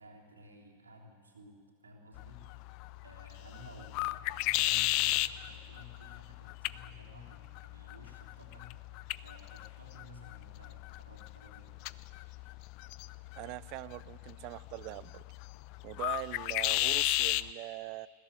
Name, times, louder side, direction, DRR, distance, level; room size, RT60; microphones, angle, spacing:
voice 1, 0.0-2.7 3.0-8.7 9.1-11.9, left 1 dB, 75° right, -1 dB, 3.4 m, -54 dB
sound 1, 2.1-17.5, left 18 dB, 45° left, 0.5 m, -35 dB
voice 2, 13.4-15.2 15.8-18.1, right 20 dB, 45° right, 21 dB, 0.4 m, -42 dB
21.0 x 16.0 x 8.3 m, 2.2 s
figure-of-eight pair, 90°, 0 cm